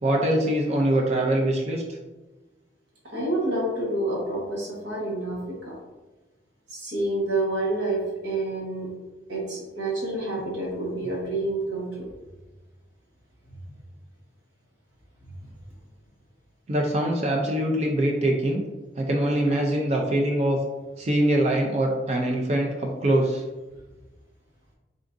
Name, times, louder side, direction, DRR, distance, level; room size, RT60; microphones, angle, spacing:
voice 1, 0.0-1.8 16.7-18.6 19.0-20.6 21.0-23.4, right 1 dB, 35° right, 0 dB, 0.4 m, -23 dB
voice 2, 3.1-5.7 6.7-8.9 9.3-12.1 13.5-13.6, right 2 dB, 85° right, -4 dB, 1.4 m, -28 dB
3.7 x 3.6 x 2.6 m, 1.1 s
head